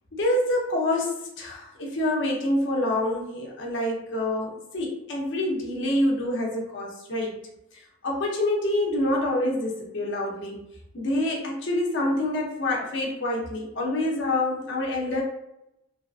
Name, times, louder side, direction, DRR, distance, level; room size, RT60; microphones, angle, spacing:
voice 1, 0.1-7.3 7.7-10.6 10.9-15.2, left 1 dB, 55° left, -2 dB, 0.6 m, -26 dB
2.7 x 2.3 x 2.4 m, 0.86 s
head